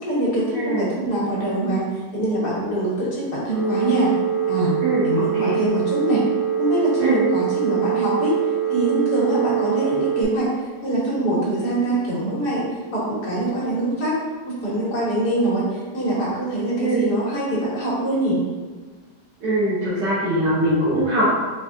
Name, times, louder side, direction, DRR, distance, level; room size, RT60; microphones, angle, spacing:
voice 1, 0.0-1.8 2.1-4.1 4.5-4.7 5.0-6.2 6.6-8.3 8.7-10.5 10.8-12.6 12.9-14.2 14.5-18.4, right 1 dB, 70° left, -7 dB, 1.9 m, -23 dB
voice 2, 0.5-0.9 4.8-5.5 7.0-7.2 16.8-17.0 19.4-21.4, right 1 dB, 85° right, -10 dB, 1.7 m, -22 dB
Telephone, 3.5-10.2, right 10 dB, 5° right, 0.6 m, -24 dB
4.7 x 3.3 x 2.7 m, 1.4 s
omnidirectional pair, 1.8 m